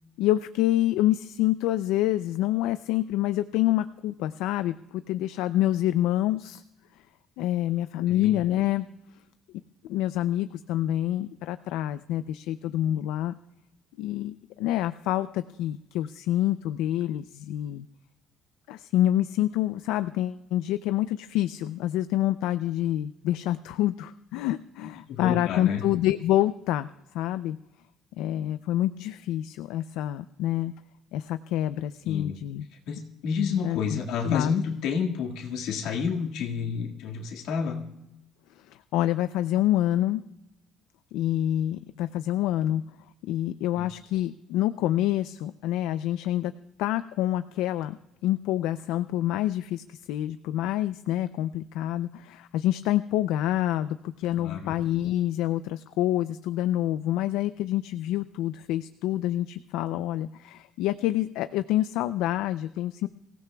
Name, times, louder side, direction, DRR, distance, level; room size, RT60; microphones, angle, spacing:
voice 1, 0.2-6.6 7.4-8.9 9.9-13.3 14.0-17.9 18.7-27.6 28.2-30.7 31.1-32.7 33.6-34.0 34.2-34.5 38.9-40.2 41.1-42.8 43.3-46.5 46.8-48.0 48.2-63.1, left 13 dB, 90° left, 12 dB, 0.4 m, -27 dB
voice 2, 24.8-25.8 32.0-32.4 32.9-37.8 43.8-43.9 54.4-54.7, left 6 dB, 70° left, 1 dB, 1.9 m, -30 dB
24.5 x 16.5 x 2.3 m, 0.88 s
cardioid pair, 175°, 0 cm